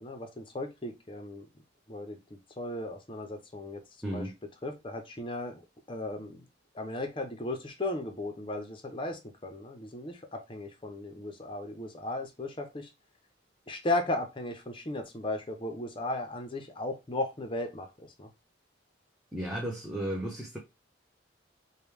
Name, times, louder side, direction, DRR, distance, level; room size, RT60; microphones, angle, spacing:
voice 1, 0.0-1.5 1.9-4.2 4.6-5.6 5.9-6.5 6.7-12.9 13.7-18.3, left 2 dB, 25° left, 0.7 m, -36 dB
voice 2, 4.0-4.3 19.3-20.6, right 1 dB, ahead, 0.8 m, -34 dB
5.1 x 2.3 x 3.3 m
head